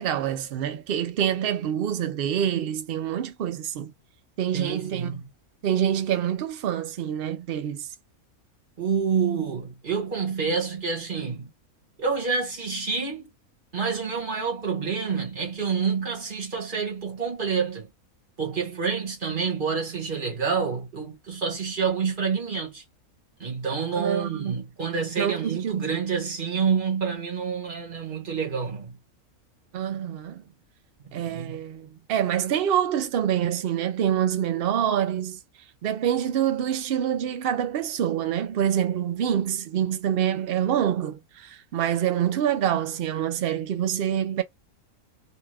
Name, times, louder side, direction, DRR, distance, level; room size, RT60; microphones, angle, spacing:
voice 1, 0.0-3.9 4.4-5.2 5.6-7.9 23.9-24.7 25.2-25.8 29.7-30.4 31.1-35.4 35.8-44.4, right 10 dB, 70° right, 0.5 m, -26 dB
voice 2, 4.5-5.2 8.8-11.5 12.0-13.3 13.7-17.9 18.4-22.8 23.4-29.0 31.0-31.6, right 5 dB, 35° right, 1.3 m, -28 dB
2.8 x 2.2 x 3.3 m
omnidirectional pair, 1.5 m